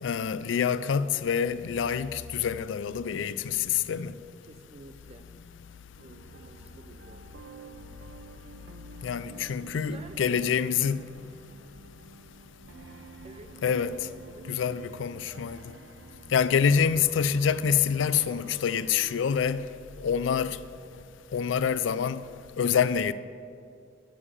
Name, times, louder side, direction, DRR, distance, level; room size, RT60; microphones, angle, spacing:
voice 1, 0.0-4.1 9.0-11.0 13.6-14.1 14.5-15.6 16.3-19.7 20.0-20.6 21.3-22.2 22.6-23.1, left 7 dB, 75° left, 0.4 m, -26 dB
voice 2, 4.4-5.3 6.0-7.2 9.4-10.5 10.9-11.1 13.2-13.5 14.3-14.5, right 2 dB, 35° right, 0.6 m, -51 dB
sound 1, 6.0-19.2, right 4 dB, 70° right, 0.8 m, -50 dB
12.0 x 7.1 x 4.9 m
head